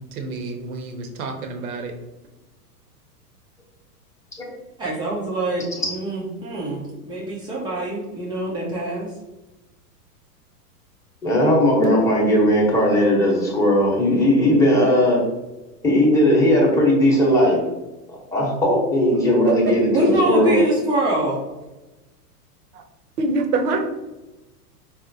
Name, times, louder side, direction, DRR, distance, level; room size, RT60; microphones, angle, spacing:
voice 1, 0.2-1.9 23.2-23.8, right 3 dB, 65° right, 4 dB, 0.8 m, -26 dB
voice 2, 4.8-9.1 19.9-21.5, right 1 dB, 10° right, -5 dB, 0.3 m, -24 dB
voice 3, 11.2-15.2 15.8-17.6 18.1-20.6, left 1 dB, 5° left, -4 dB, 0.8 m, -17 dB
4.1 x 2.0 x 2.6 m, 1.0 s
hypercardioid pair, 110°, 48 cm